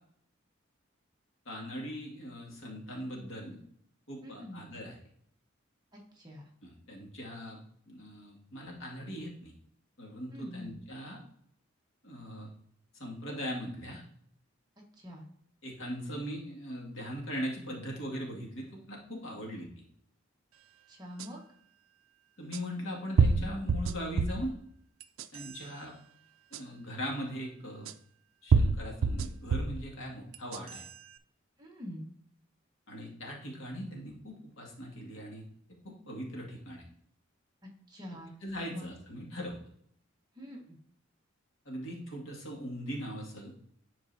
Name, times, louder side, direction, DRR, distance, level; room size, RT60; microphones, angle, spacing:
voice 1, 1.5-3.6 4.1-5.0 6.6-9.5 10.0-11.2 12.0-12.5 13.0-14.0 15.6-19.7 22.4-24.5 25.3-25.9 26.5-27.9 28.4-30.8 32.9-35.4 35.8-36.8 38.4-39.6 41.7-43.6, equal, 70° left, -2 dB, 2.2 m, -40 dB
voice 2, 4.2-4.7 5.9-6.4 10.3-10.7 15.0-15.3 20.9-21.4 31.6-32.1 37.9-38.4 38.7-38.9 40.4-40.8, equal, 20° right, -1 dB, 1.5 m, -45 dB
sound 1, 21.2-21.3 22.5-22.6 23.2-24.5 25.0-25.6 26.5-26.6 27.9-28.0 28.5-29.8 30.3-30.9, right 4 dB, 80° right, 0.4 m, -27 dB
11.0 x 4.5 x 2.8 m, 0.67 s
head